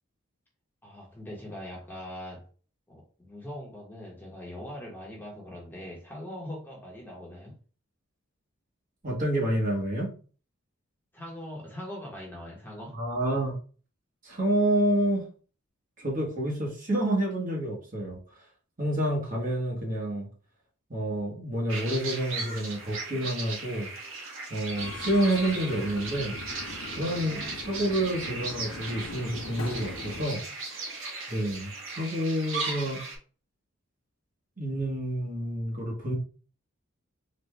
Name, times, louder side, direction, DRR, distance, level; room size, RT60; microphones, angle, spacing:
voice 1, 0.8-2.5 2.9-7.5 11.1-13.0, left 1 dB, 10° left, 1.2 m, -41 dB
voice 2, 9.0-10.1 12.9-13.5 14.2-15.3 16.0-18.2 18.8-20.3 20.9-23.9 24.5-30.4 31.3-33.0 34.6-36.1, right 1 dB, 40° right, 1.3 m, -29 dB
sound 1, 21.7-33.2, right 3 dB, 65° right, 1.3 m, -37 dB
Subway metro underground, 24.8-30.2, left 3 dB, 70° left, 0.7 m, -41 dB
4.1 x 2.5 x 3.3 m
head